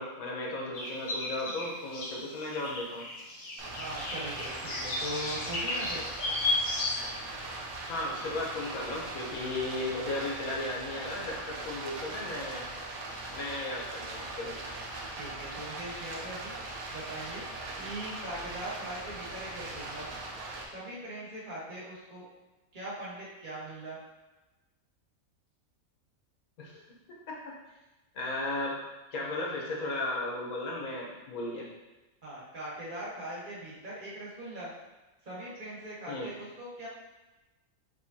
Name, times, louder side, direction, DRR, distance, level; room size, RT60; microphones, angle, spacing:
voice 1, 0.0-3.0 7.9-12.6 13.3-14.6 26.6-26.8 27.3-27.4 28.1-28.8 29.1-31.7 36.1-36.3, left 2 dB, 85° left, -3 dB, 1.4 m, -35 dB
sound 1, 0.7-7.4 7.9-8.0 8.8-9.1 9.3-9.7, left 2 dB, 60° left, 1.1 m, -34 dB
Stream, 3.6-20.6, right 2 dB, 90° right, 1.2 m, -40 dB
voice 2, 3.8-6.0 15.2-16.5 16.9-17.4 17.7-20.1 20.7-22.2 22.7-24.0 32.2-34.7 35.2-36.9, right 1 dB, 35° right, -7 dB, 1.5 m, -40 dB
5.4 x 3.1 x 2.8 m, 1.1 s
omnidirectional pair, 1.5 m